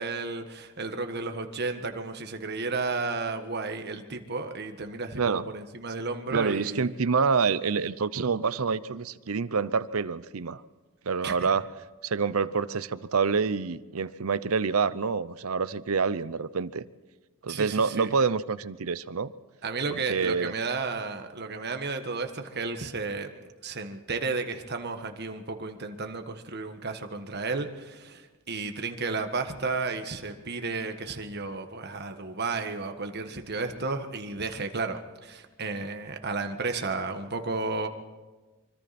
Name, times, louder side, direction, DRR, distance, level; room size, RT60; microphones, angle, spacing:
voice 1, 0.0-6.9 11.2-11.5 17.5-18.1 19.6-37.9, right 3 dB, 50° right, 1.6 m, -33 dB
voice 2, 5.2-5.5 6.3-10.6 11.1-11.7 12.0-16.8 17.4-19.3 19.9-20.5, right 5 dB, 80° right, 0.7 m, -27 dB
25.5 x 24.5 x 4.3 m
head